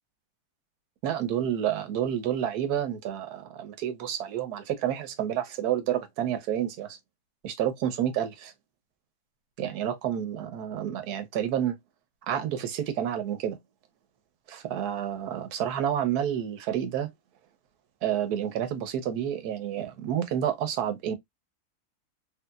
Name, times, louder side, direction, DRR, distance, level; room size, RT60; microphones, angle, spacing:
voice 1, 1.0-7.0 7.4-8.5 9.6-11.8 12.3-13.6 14.5-17.1 18.0-21.2, right 10 dB, 85° right, 1.2 m, -29 dB
3.1 x 2.8 x 2.2 m
omnidirectional pair, 1.6 m